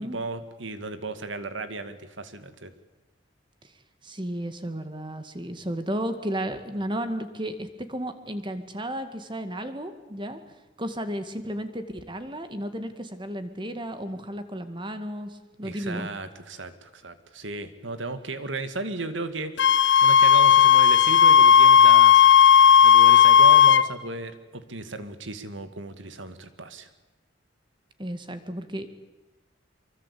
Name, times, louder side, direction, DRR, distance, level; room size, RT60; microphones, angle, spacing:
voice 1, 0.0-2.7 15.6-26.9, right 2 dB, 85° right, 10 dB, 2.2 m, -35 dB
voice 2, 4.0-10.4 10.8-16.1 28.0-28.9, equal, 25° right, 9 dB, 2.0 m, -33 dB
Wind instrument woodwind instrument, 19.6-23.9, left 8 dB, 75° left, 0.9 m, -14 dB
24.5 x 24.0 x 8.6 m, 1.1 s
head